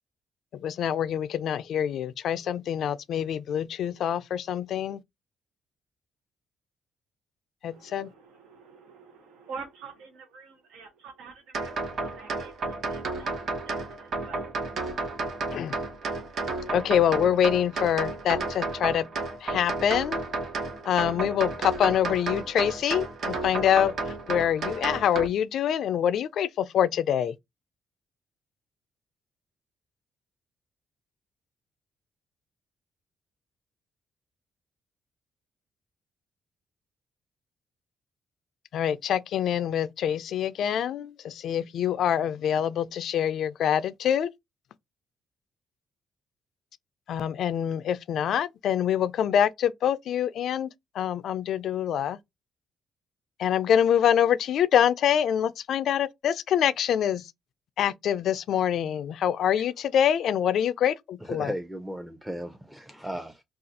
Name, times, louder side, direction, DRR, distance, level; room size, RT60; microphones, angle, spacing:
voice 1, 0.5-5.0 7.6-8.1 15.5-15.8 16.7-19.1 19.4-20.2 20.8-27.3 38.7-44.3 47.1-50.7 50.9-52.2 53.4-57.3 57.8-61.5, left 9 dB, 70° left, 0.3 m, -25 dB
voice 2, 7.7-14.9, right 5 dB, 90° right, 0.8 m, -47 dB
sound 1, 11.5-25.3, right 3 dB, 60° right, 0.9 m, -32 dB
voice 3, 61.2-63.4, equal, 5° right, 0.5 m, -36 dB
2.4 x 2.3 x 4.0 m
cardioid pair, 90°, 0 cm